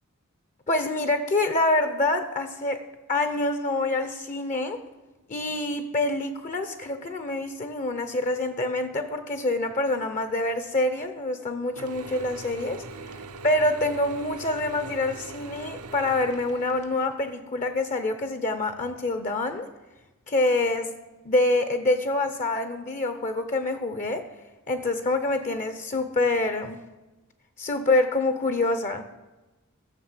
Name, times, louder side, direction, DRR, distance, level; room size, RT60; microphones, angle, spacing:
voice 1, 0.7-2.8 3.1-4.8 5.3-12.8 13.4-19.7 20.3-21.0 21.2-24.3 24.7-26.8 27.6-29.1, left 2 dB, 35° left, 10 dB, 0.7 m, -26 dB
Mechanisms / Drill, 11.8-17.3, right 3 dB, 80° right, 0.8 m, -41 dB
13.0 x 6.8 x 7.3 m, 1.1 s
head